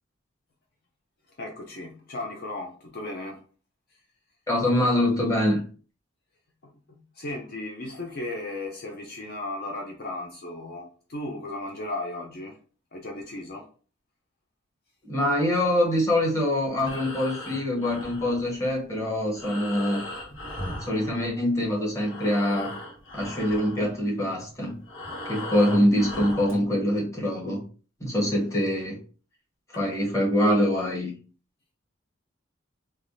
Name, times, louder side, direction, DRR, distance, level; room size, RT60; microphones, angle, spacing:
voice 1, 1.3-3.4 6.6-12.6 12.9-13.7 29.7-29.8, left 2 dB, 50° left, 0.5 m, -36 dB
voice 2, 4.5-5.6 15.0-20.0 20.8-22.7 23.1-24.8 25.2-27.6 28.0-29.0 29.7-31.1, left 1 dB, 15° left, 1.0 m, -24 dB
Breathing, 16.7-21.7 21.9-26.6, left 1 dB, 80° left, 1.1 m, -38 dB
3.4 x 2.3 x 2.5 m
head